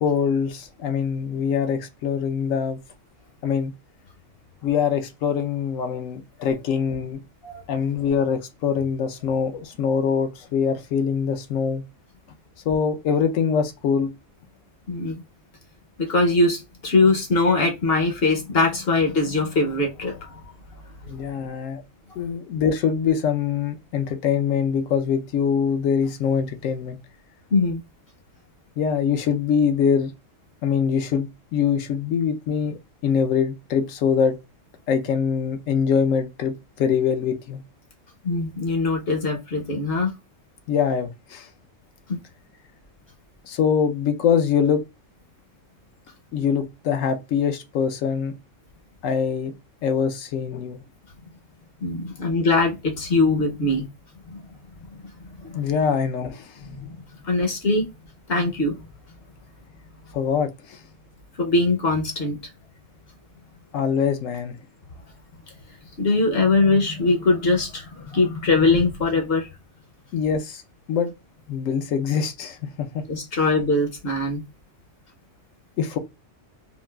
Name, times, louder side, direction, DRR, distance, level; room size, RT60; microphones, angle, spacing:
voice 1, 0.0-2.8 3.4-3.7 4.6-7.2 7.7-11.8 12.7-14.1 21.1-21.8 22.2-27.0 28.8-30.1 30.6-34.4 34.9-37.6 40.7-41.5 43.4-44.8 46.3-48.3 49.0-49.5 49.8-50.8 55.5-56.6 60.1-60.8 63.7-64.6 70.1-70.6 70.9-71.1 71.5-73.0 75.8-76.0, left 7 dB, 80° left, 1.0 m, -23 dB
voice 2, 14.9-15.2 16.0-20.4 21.0-21.2 27.5-27.8 38.2-40.1 42.1-42.2 51.8-53.9 54.3-54.4 55.4-55.7 56.6-57.9 58.3-58.8 61.4-62.4 66.0-69.5 73.1-74.4, left 3 dB, 55° left, 0.8 m, -22 dB
3.8 x 2.3 x 2.2 m
omnidirectional pair, 1.3 m